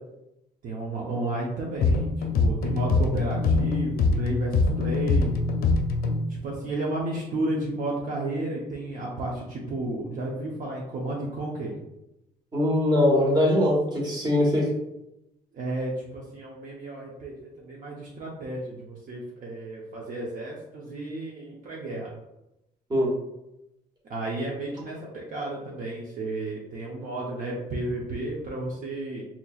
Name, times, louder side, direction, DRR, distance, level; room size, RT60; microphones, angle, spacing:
voice 1, 0.6-5.3 6.3-11.7 15.5-22.1 24.1-29.2, right 2 dB, 50° right, -3 dB, 0.8 m, -32 dB
sound 1, 1.8-6.3, left 3 dB, 60° left, 0.5 m, -24 dB
voice 2, 12.5-14.7 22.9-23.1, left 1 dB, 25° right, -3 dB, 1.3 m, -21 dB
4.3 x 3.0 x 2.4 m, 0.89 s
cardioid pair, 110°, 17 cm